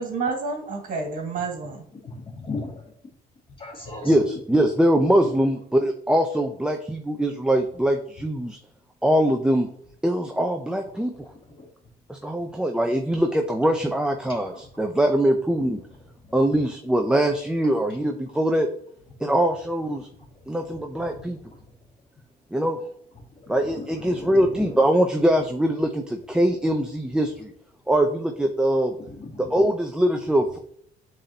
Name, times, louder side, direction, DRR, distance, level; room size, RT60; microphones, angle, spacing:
voice 1, 0.0-1.8 3.9-4.1, right 4 dB, 55° right, 1 dB, 2.1 m, -29 dB
voice 2, 2.0-2.8 3.6-4.1 11.6-11.7 23.5-23.8 24.2-24.8 29.1-29.5, left 3 dB, 30° left, 0 dB, 2.4 m, -36 dB
voice 3, 4.0-8.6 9.0-9.7 10.0-11.1 12.1-15.8 16.3-18.7 19.2-20.1 20.5-21.4 22.5-22.8 23.5-27.5 27.9-28.9 29.4-30.6, right 1 dB, 5° right, 4 dB, 0.7 m, -22 dB
8.6 x 4.1 x 2.8 m, 0.65 s
cardioid pair, 110°, 17 cm